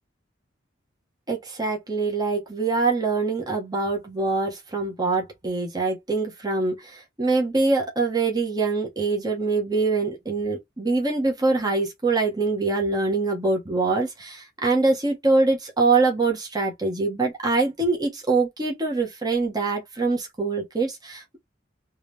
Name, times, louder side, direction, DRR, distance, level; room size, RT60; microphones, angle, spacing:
voice 1, 1.3-21.4, right 3 dB, 20° right, 1.4 m, -24 dB
3.6 x 3.2 x 3.4 m
head